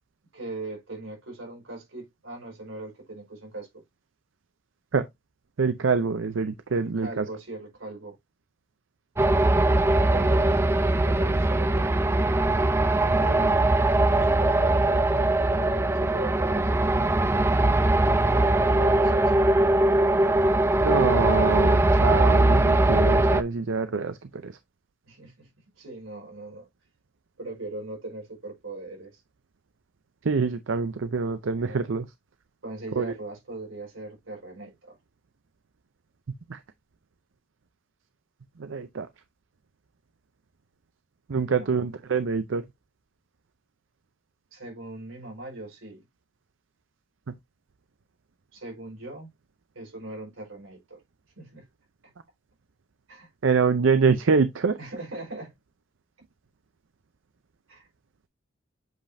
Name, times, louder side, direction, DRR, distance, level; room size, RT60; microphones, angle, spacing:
voice 1, 0.3-3.8 6.7-8.2 10.1-10.6 11.0-12.4 13.0-13.6 14.1-17.3 18.2-19.6 25.1-25.5 25.8-26.7 27.4-29.2 31.6-31.9 32.6-35.0 41.3-41.9 44.5-46.0 48.5-49.3 49.7-51.0 51.4-51.7 52.0-52.1 53.1-53.3 54.8-55.5 57.7-57.9, right 2 dB, 90° right, 4.6 m, -39 dB
voice 2, 5.6-7.2 20.8-24.2 24.4-24.5 30.2-32.1 33.0-33.1 36.5-36.6 38.6-39.1 41.3-42.6 53.4-54.8, right 5 dB, 70° right, 0.6 m, -25 dB
sound 1, 9.2-23.4, right 2 dB, 15° right, 0.4 m, -21 dB
7.8 x 5.2 x 2.6 m
head